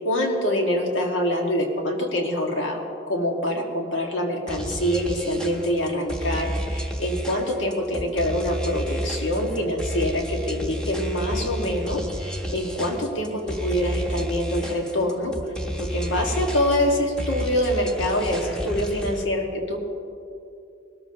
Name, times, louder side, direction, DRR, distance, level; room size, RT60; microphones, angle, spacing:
voice 1, 0.0-15.3 15.8-19.8, left 1 dB, 85° left, 1 dB, 1.8 m, -25 dB
sound 1, 4.5-19.2, equal, 5° left, 1.0 m, -31 dB
20.0 x 13.0 x 2.9 m, 2.6 s
head